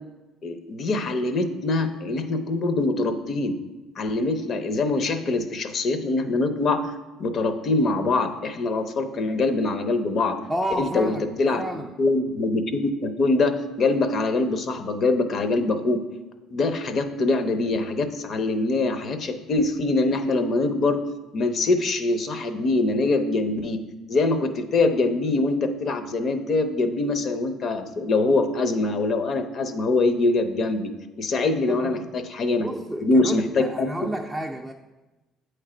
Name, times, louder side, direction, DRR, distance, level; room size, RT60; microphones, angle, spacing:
voice 1, 0.4-3.6 4.0-6.9 7.2-10.4 10.8-11.6 12.0-16.0 16.5-21.1 21.3-23.8 24.1-30.9 31.2-32.7 33.0-34.1, left 2 dB, 45° left, 0.6 m, -23 dB
voice 2, 10.5-11.9 31.7-32.1 32.6-34.7, equal, 5° right, 0.3 m, -31 dB
8.1 x 3.3 x 4.9 m
cardioid pair, 120°, 0 cm